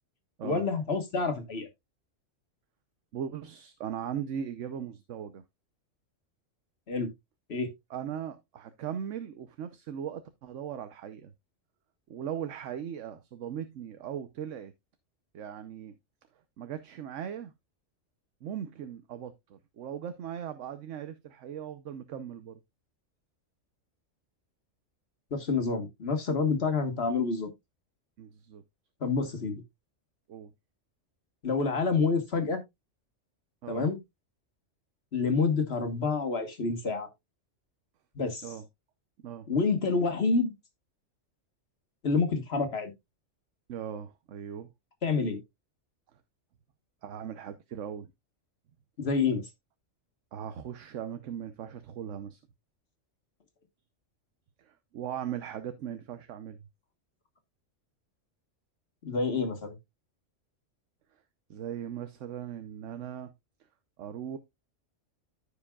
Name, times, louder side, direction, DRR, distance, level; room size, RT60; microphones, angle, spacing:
voice 1, 0.4-1.7 6.9-7.1 7.5-7.7 25.3-27.5 29.0-29.6 31.4-32.6 33.7-34.0 35.1-37.1 38.2-38.5 39.5-40.5 42.0-42.9 45.0-45.4 49.0-49.5 59.0-59.8, left 4 dB, 55° left, 1.7 m, -28 dB
voice 2, 3.1-5.4 7.9-11.3 12.1-14.7 15.3-16.0 16.6-17.5 18.4-22.6 28.2-28.6 30.3-30.5 33.6-33.9 38.4-38.6 39.2-39.5 43.7-44.7 47.0-48.1 50.3-52.4 54.6-56.6 61.5-63.3 64.0-64.4, right 9 dB, 75° right, 1.1 m, -39 dB
14.5 x 5.1 x 2.3 m
omnidirectional pair, 1.3 m